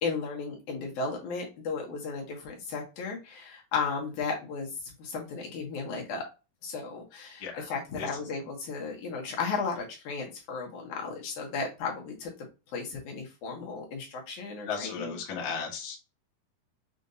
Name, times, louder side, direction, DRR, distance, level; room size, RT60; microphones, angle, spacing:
voice 1, 0.0-6.2 6.6-12.3 12.7-15.2, left 4 dB, 70° left, 0 dB, 2.4 m, -35 dB
voice 2, 14.7-16.0, left 6 dB, 55° left, -1 dB, 1.4 m, -35 dB
6.4 x 2.6 x 2.6 m, 0.29 s
omnidirectional pair, 3.8 m